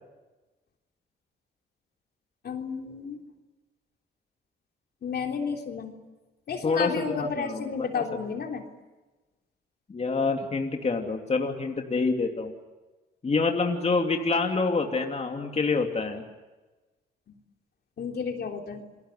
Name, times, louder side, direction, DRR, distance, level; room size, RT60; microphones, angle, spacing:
voice 1, 2.4-3.2 5.0-5.9 6.5-8.6 18.0-18.8, left 5 dB, 55° left, 3 dB, 3.4 m, -32 dB
voice 2, 6.6-7.6 7.9-8.0 9.9-12.5 13.2-16.2, left 4 dB, 30° left, 3 dB, 3.0 m, -27 dB
28.5 x 22.5 x 8.0 m, 1.2 s
cardioid pair, 90°, 20 cm